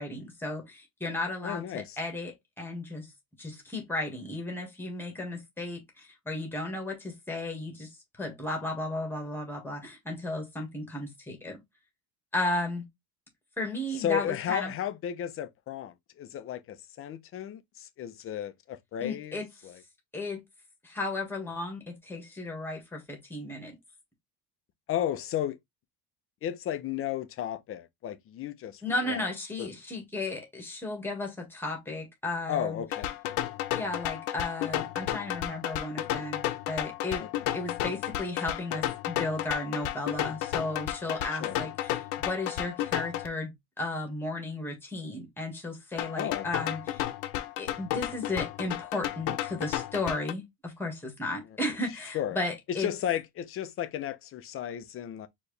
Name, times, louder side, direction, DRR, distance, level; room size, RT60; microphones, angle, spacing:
voice 1, 0.0-3.1 3.4-7.9 8.2-11.6 12.3-12.8 13.6-14.7 19.0-19.5 20.1-20.4 20.8-23.8 28.8-32.8 33.8-47.1 47.6-52.9, left 2 dB, 5° left, 1.6 m, -34 dB
voice 2, 1.4-2.0 14.0-19.8 24.9-25.6 26.4-29.3 29.6-29.7 32.5-33.1 37.2-37.3 41.3-41.6 46.2-46.5 51.4-51.6 52.1-52.4 52.7-55.3, left 10 dB, 35° left, 0.6 m, -34 dB
sound 1, 32.9-43.3 46.0-50.3, left 13 dB, 75° left, 0.9 m, -33 dB
4.5 x 3.1 x 3.2 m
cardioid pair, 175°, 41 cm